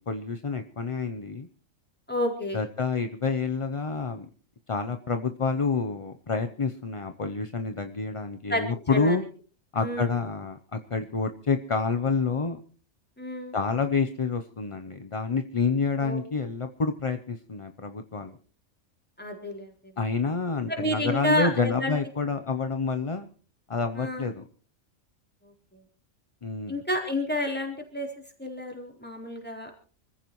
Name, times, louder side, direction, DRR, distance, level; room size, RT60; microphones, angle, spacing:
voice 1, 0.0-1.5 2.5-4.3 4.7-9.2 9.7-12.6 13.5-18.4 20.0-23.3 23.7-24.4 26.4-26.8, left 4 dB, 30° left, 7 dB, 0.6 m, -28 dB
voice 2, 2.1-2.6 8.5-9.2 9.8-10.2 13.2-13.6 16.0-16.2 19.2-19.7 20.7-22.0 24.0-24.3 26.7-28.1 28.4-29.7, left 1 dB, 5° left, 0 dB, 3.9 m, -30 dB
25.5 x 15.0 x 3.1 m, 0.40 s
omnidirectional pair, 1.4 m